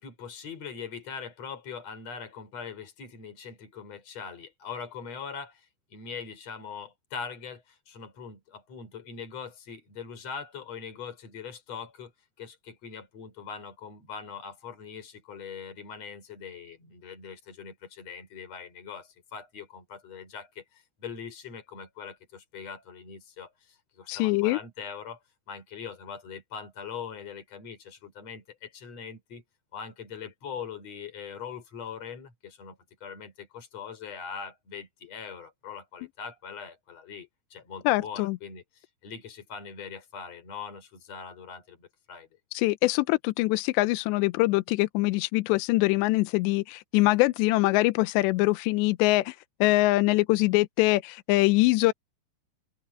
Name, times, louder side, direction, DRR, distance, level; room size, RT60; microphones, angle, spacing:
voice 1, 0.0-12.1 12.4-25.2 25.5-29.4 29.7-42.3, left 6 dB, 35° left, 6.5 m, -42 dB
voice 2, 24.1-24.6 37.9-38.4 42.5-49.4 49.6-51.9, left 20 dB, 85° left, 2.9 m, -23 dB
open air
omnidirectional pair, 5.1 m